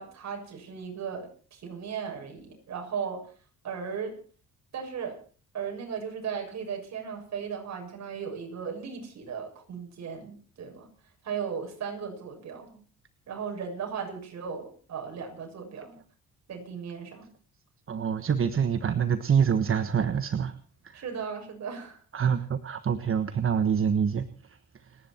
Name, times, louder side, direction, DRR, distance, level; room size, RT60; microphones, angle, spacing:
voice 1, 0.0-3.3 3.6-4.2 4.7-5.2 5.5-10.9 11.2-12.8 13.3-16.0 16.5-17.3 20.9-22.0, right 6 dB, 60° right, 2 dB, 6.9 m, -36 dB
voice 2, 17.9-20.5 22.1-24.3, right 7 dB, 45° right, 10 dB, 1.4 m, -25 dB
30.0 x 10.5 x 4.5 m, 0.39 s
cardioid pair, 90°, 30 cm